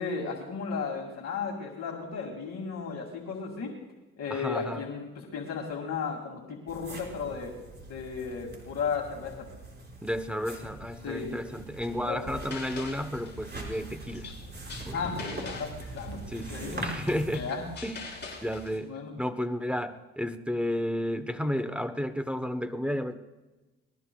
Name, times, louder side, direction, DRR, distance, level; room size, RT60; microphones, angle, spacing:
voice 1, 0.0-3.7 4.2-7.5 7.9-9.5 11.0-11.4 11.9-12.4 14.9-16.9 17.3-17.7 18.8-19.2, left 5 dB, 60° left, 1 dB, 2.3 m, -35 dB
voice 2, 4.3-4.8 10.0-14.3 14.9-15.5 16.3-17.4 17.8-18.0 18.4-18.9 19.2-23.2, equal, 5° right, 8 dB, 0.9 m, -32 dB
sound 1, 6.7-17.4, right 2 dB, 35° right, 5.4 m, -43 dB
sound 2, 12.3-18.8, left 3 dB, 35° left, 7.3 m, -44 dB
25.5 x 21.0 x 2.3 m, 1.1 s
cardioid pair, 90°, 30 cm